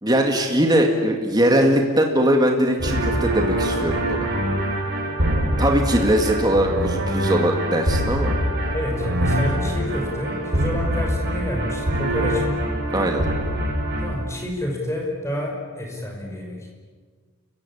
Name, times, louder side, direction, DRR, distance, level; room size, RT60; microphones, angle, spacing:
voice 1, 0.0-4.3 5.6-8.3 12.9-13.3, right 1 dB, 20° right, 2 dB, 2.1 m, -20 dB
sound 1, 2.8-14.1, right 1 dB, 50° right, 5.6 m, -24 dB
voice 2, 8.7-12.6 14.0-16.7, left 1 dB, 15° left, 0 dB, 5.7 m, -28 dB
29.0 x 16.0 x 10.0 m, 1.5 s
head